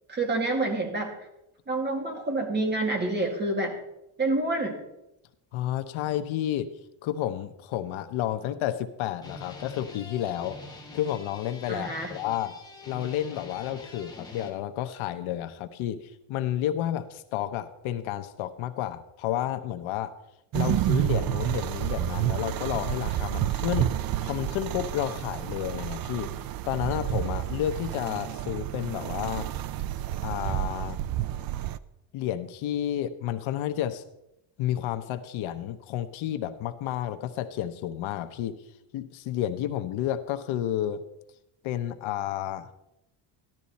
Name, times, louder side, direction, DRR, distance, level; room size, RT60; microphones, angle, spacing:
voice 1, 0.1-1.1 1.7-3.8 4.2-4.8 11.7-12.2, right 2 dB, 20° right, 2 dB, 2.1 m, -28 dB
voice 2, 5.5-6.7 7.0-10.6 10.9-12.6 12.9-20.1 20.5-23.9 24.2-26.3 26.7-29.5 30.2-31.0 32.1-34.0 34.6-38.6 38.9-41.0 41.6-42.7, left 12 dB, 75° left, 9 dB, 1.0 m, -31 dB
sound 1, 8.3-8.9 9.1-14.5, left 2 dB, 10° left, 1.7 m, -45 dB
sound 2, 20.5-31.8, right 13 dB, 50° right, 0.5 m, -30 dB
14.0 x 12.5 x 4.2 m, 0.86 s
cardioid pair, 175°, 49 cm